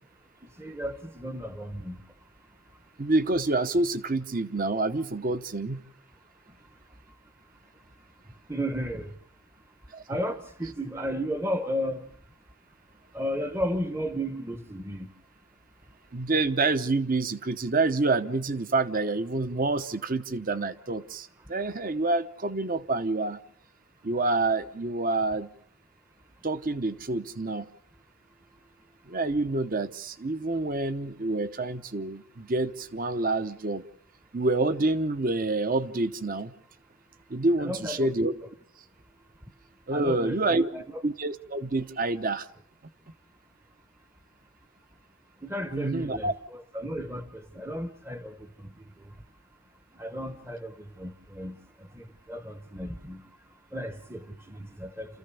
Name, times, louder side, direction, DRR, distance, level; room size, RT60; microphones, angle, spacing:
voice 1, 0.6-2.0 8.5-9.1 10.1-12.1 13.1-15.1 37.6-38.1 39.9-41.0 45.4-48.7 49.9-53.2 53.7-55.2, equal, 10° right, 0.9 m, -34 dB
voice 2, 3.0-5.8 9.9-10.0 16.1-23.4 24.0-25.5 26.4-27.7 29.1-33.8 34.3-36.5 37.3-38.3 39.9-40.7 41.0-42.5 45.7-46.3, right 2 dB, 40° right, 0.9 m, -27 dB
28.5 x 14.5 x 7.0 m
head